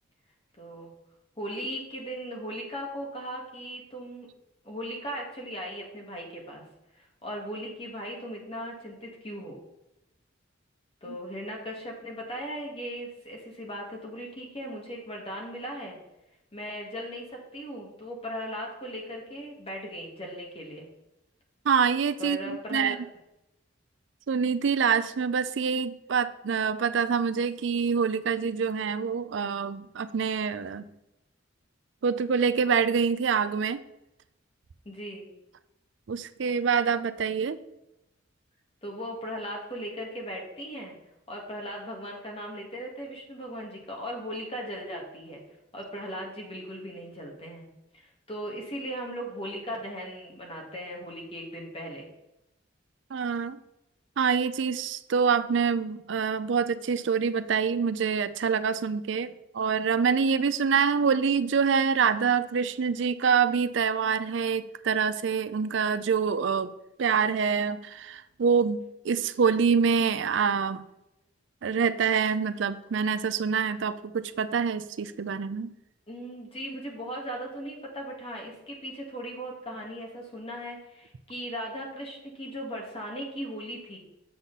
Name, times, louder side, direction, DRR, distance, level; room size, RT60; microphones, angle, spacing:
voice 1, 0.6-0.9 1.4-4.3 4.6-6.6 7.0-9.6 11.0-16.0 16.5-20.9 22.2-23.0 34.9-35.3 38.8-41.0 41.3-45.4 45.7-47.7 47.9-52.1 76.1-84.0, equal, 30° left, -1 dB, 2.1 m, -38 dB
voice 2, 21.7-23.0 24.3-30.8 32.0-33.8 36.1-37.6 53.1-53.6 54.2-66.7 67.0-70.8 71.6-75.7, right 6 dB, 70° right, 13 dB, 0.4 m, -26 dB
7.8 x 6.8 x 4.1 m, 0.89 s
head